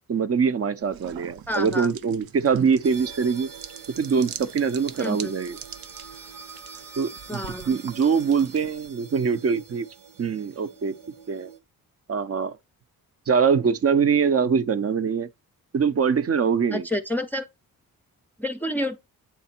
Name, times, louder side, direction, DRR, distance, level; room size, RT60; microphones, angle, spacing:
voice 1, 0.1-3.5 4.0-5.6 7.0-9.9 10.2-10.9 11.3-11.5 12.1-12.5 13.3-15.3 15.7-16.9, right 6 dB, 40° right, 0.7 m, -23 dB
sound 1, 0.8-8.9, right 10 dB, 85° right, 0.7 m, -44 dB
voice 2, 1.5-1.9 5.0-5.3 7.3-7.7 16.7-17.5 18.4-19.0, left 1 dB, 5° left, 0.6 m, -29 dB
sound 2, 2.8-11.6, right 6 dB, 70° right, 1.5 m, -45 dB
8.3 x 3.4 x 4.3 m
cardioid pair, 95°, 35 cm